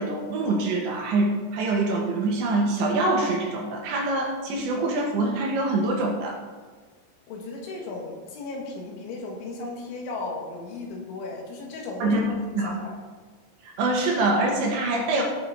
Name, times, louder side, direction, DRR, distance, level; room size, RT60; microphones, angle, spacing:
voice 1, 0.0-6.4 12.0-12.7 13.8-15.2, right 2 dB, 70° right, -1 dB, 3.5 m, -25 dB
voice 2, 7.3-12.2 12.5-13.0, left 3 dB, 70° left, 0 dB, 3.9 m, -35 dB
17.5 x 6.9 x 4.1 m, 1.4 s
omnidirectional pair, 5.9 m